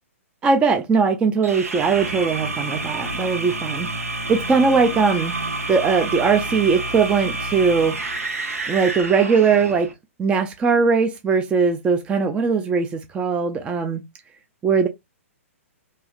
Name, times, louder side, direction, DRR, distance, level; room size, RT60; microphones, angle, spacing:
voice 1, 0.4-3.9 4.3-5.3 5.7-8.0 8.7-9.9 10.2-14.0 14.6-14.9, right 5 dB, 15° right, 0.4 m, -20 dB
sound 1, 1.4-9.9, right 2 dB, 85° right, 0.9 m, -29 dB
3.1 x 2.7 x 2.4 m
hypercardioid pair, 120°, 8 cm